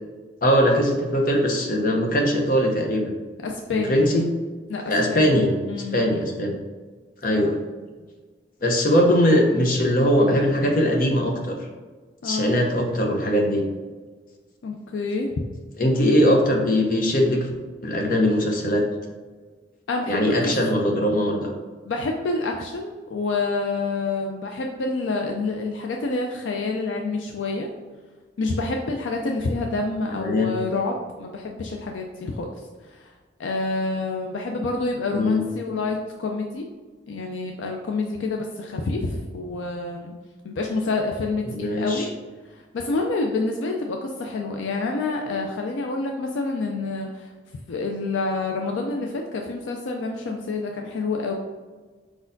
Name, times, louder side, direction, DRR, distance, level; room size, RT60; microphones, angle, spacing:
voice 1, 0.4-3.1 3.7-4.2 4.9-5.5 5.9-6.5 7.2-7.5 8.6-11.5 12.2-13.6 15.8-17.5 17.8-18.8 20.1-21.5 30.1-30.5 35.1-35.4 41.5-42.1, equal, 45° left, 1 dB, 0.7 m, -20 dB
voice 2, 3.4-4.1 4.7-4.8 5.1-5.3 5.7-6.0 7.3-7.6 12.2-12.5 14.6-15.3 19.9-20.2 20.4-20.5 21.9-27.7 28.4-32.5 32.9-33.1 33.4-36.6 37.1-40.1 40.4-42.1 42.7-47.3 47.7-51.3, left 3 dB, 80° left, 2 dB, 0.4 m, -28 dB
4.7 x 4.1 x 2.6 m, 1.4 s
head